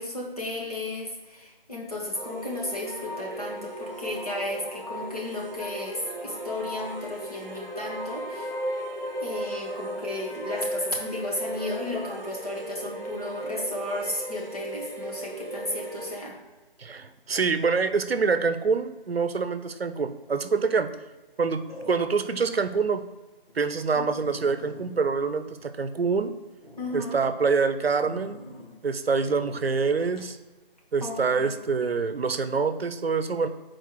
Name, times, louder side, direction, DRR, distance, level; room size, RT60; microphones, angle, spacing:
voice 1, 0.0-8.5 9.2-16.4 23.9-24.1 26.8-27.2 31.0-31.5, left 1 dB, 40° left, -2 dB, 1.3 m, -34 dB
sound 1, 2.1-16.3, right 1 dB, 50° right, 1.0 m, -36 dB
voice 2, 16.8-20.9 21.4-23.0 23.5-26.3 26.9-28.4 28.8-30.4 30.9-33.5, right 5 dB, 80° right, 10 dB, 0.7 m, -26 dB
sound 2, 20.2-20.5 21.7-22.4 22.9-23.0 23.5-23.6 23.8-23.9 24.2-26.2 26.6-27.0 28.0-28.8 29.2-29.6 30.2-30.3, equal, 75° left, 1.9 m, -45 dB
6.5 x 4.5 x 4.6 m, 1.2 s
figure-of-eight pair, 180°, 30 cm